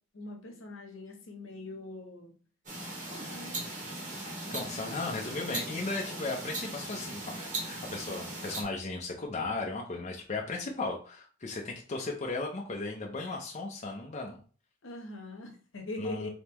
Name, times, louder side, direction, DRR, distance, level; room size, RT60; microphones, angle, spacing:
voice 1, 0.1-2.3 3.1-3.5 4.5-5.1 14.8-16.3, left 2 dB, 70° left, 3 dB, 1.0 m, -42 dB
sound 1, 2.7-8.6, right 2 dB, 40° right, 1.5 m, -38 dB
voice 2, 4.5-14.4 16.0-16.3, left 3 dB, 35° left, 0 dB, 0.6 m, -36 dB
3.9 x 3.7 x 3.0 m, 0.40 s
head